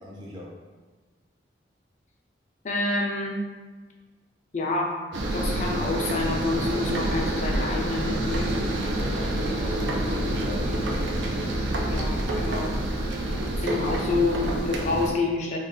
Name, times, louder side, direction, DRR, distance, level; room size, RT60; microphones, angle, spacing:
voice 1, 0.0-0.5 9.0-10.9 13.3-13.6, left 1 dB, 25° right, -4 dB, 0.6 m, -41 dB
voice 2, 2.6-3.4 4.5-8.6 11.9-12.8 13.6-15.6, left 3 dB, 40° left, -1 dB, 0.4 m, -28 dB
sound 1, 5.1-15.1, right 1 dB, 75° right, 0.4 m, -27 dB
2.4 x 2.3 x 3.7 m, 1.4 s
head